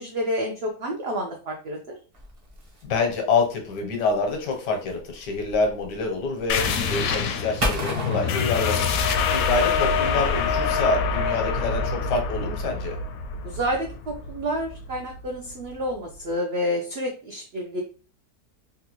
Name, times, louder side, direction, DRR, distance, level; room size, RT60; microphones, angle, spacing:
voice 1, 0.0-2.0 13.4-17.8, equal, 90° right, 2 dB, 0.5 m, -29 dB
sound 1, 2.1-10.5, equal, 35° right, 0.5 m, -36 dB
voice 2, 2.8-13.0, left 4 dB, 90° left, 3 dB, 1.5 m, -27 dB
sound 2, 6.5-15.7, left 5 dB, 70° left, 0.9 m, -26 dB
3.7 x 2.3 x 2.9 m, 0.37 s
omnidirectional pair, 1.8 m